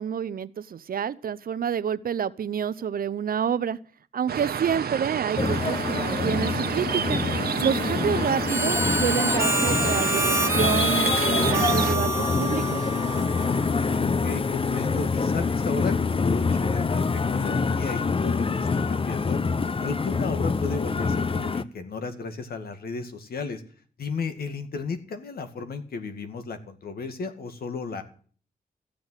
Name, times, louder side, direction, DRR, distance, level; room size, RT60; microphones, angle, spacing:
voice 1, 0.0-3.8 4.1-7.2 7.6-12.8, right 8 dB, 70° right, 16 dB, 0.8 m, -28 dB
sound 1, 4.3-12.0, right 8 dB, 85° right, 1.1 m, -30 dB
sound 2, 5.4-21.6, left 4 dB, 35° left, 0.7 m, -26 dB
Harmonica, 8.5-13.6, right 2 dB, 15° right, 0.9 m, -27 dB
voice 2, 13.7-19.4 19.8-23.6 24.0-28.0, left 4 dB, 80° left, 8 dB, 2.2 m, -34 dB
15.0 x 7.0 x 9.7 m, 0.43 s
wide cardioid pair, 95°, 16 cm